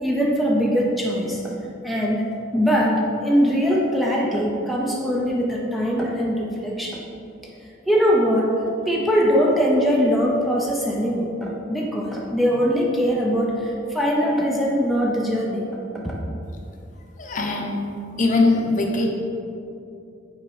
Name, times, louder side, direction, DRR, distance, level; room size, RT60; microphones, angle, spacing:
voice 1, 0.0-1.5 1.8-2.3 2.5-7.0 7.9-8.5 8.8-15.6 16.0-16.2, equal, ahead, -3 dB, 0.5 m, -21 dB
voice 2, 17.2-17.9 18.2-19.1, left 2 dB, 40° left, 1 dB, 0.7 m, -21 dB
6.2 x 3.9 x 4.7 m, 2.7 s
head